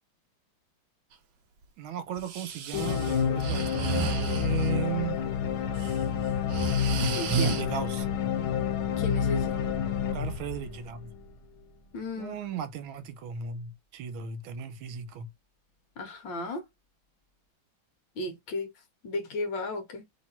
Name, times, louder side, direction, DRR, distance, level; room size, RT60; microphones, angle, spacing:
voice 1, 1.8-5.2 7.5-8.1 10.1-11.1 12.2-15.3, right 8 dB, 85° right, 1.5 m, -36 dB
Breathing, 2.2-4.7 5.6-5.9 6.3-7.6, right 6 dB, 70° right, 1.2 m, -31 dB
sound 1, 2.7-11.2, left 8 dB, 85° left, 1.6 m, -29 dB
voice 2, 7.1-7.6 9.0-9.6 11.9-12.3 16.0-16.6 18.2-18.7 19.0-20.0, left 2 dB, 70° left, 1.7 m, -34 dB
sound 2, 9.3-13.9 15.7-15.8, right 3 dB, 40° left, 0.5 m, -49 dB
3.5 x 3.1 x 4.2 m
omnidirectional pair, 2.2 m